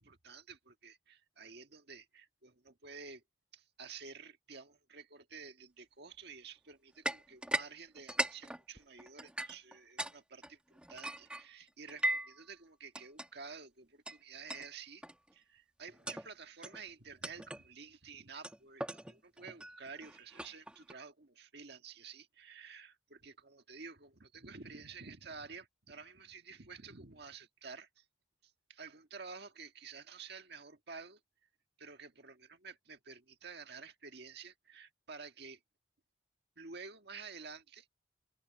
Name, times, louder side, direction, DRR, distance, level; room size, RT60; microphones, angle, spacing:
voice 1, 0.0-3.2 3.5-15.0 15.3-28.0 28.4-31.2 31.8-35.6 36.6-37.9, right 5 dB, 60° right, 1.7 m, -51 dB
sound 1, 7.0-7.7 8.0-10.1 10.4-12.4 12.9-13.3 14.1-14.2 14.5-14.7 15.0-15.3 15.9-16.3 16.6-16.8 17.2-17.7 18.4-20.9, right 1 dB, 5° right, 1.2 m, -39 dB
head